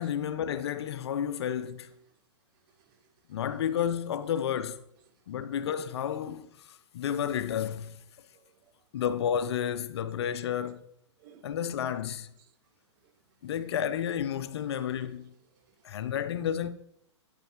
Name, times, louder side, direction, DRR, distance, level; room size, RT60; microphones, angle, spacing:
voice 1, 0.0-1.9 3.3-4.8 5.3-8.0 8.9-10.8 11.4-12.3 13.4-15.3 15.8-16.7, left 9 dB, 60° left, 0.5 m, -31 dB
voice 2, 2.7-3.0 3.3-3.7 4.9-5.1 5.5-5.6 8.3-8.7 9.1-9.2 11.2-11.6 12.4-12.5 13.0-13.1 13.4-13.5 14.7-14.8 15.2-15.7, right 8 dB, 45° right, 0.8 m, -62 dB
8.7 x 5.3 x 2.9 m
hypercardioid pair, 120°, 16 cm